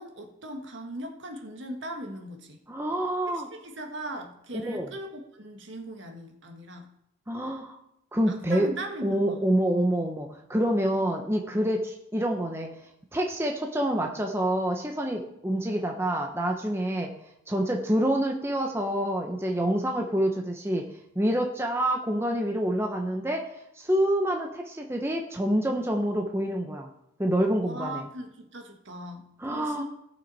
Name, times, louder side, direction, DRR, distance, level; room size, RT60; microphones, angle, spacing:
voice 1, 0.0-2.6 3.3-6.9 8.3-9.4 27.6-29.8, right 1 dB, 65° right, 3 dB, 1.6 m, -39 dB
voice 2, 2.7-3.5 4.5-4.9 7.3-7.8 8.1-8.7 9.0-12.7 13.1-17.1 17.5-20.9 21.2-23.4 23.8-26.9 27.2-28.0 29.4-29.8, right 1 dB, 10° right, 1 dB, 0.9 m, -27 dB
17.5 x 6.4 x 4.2 m, 0.79 s
head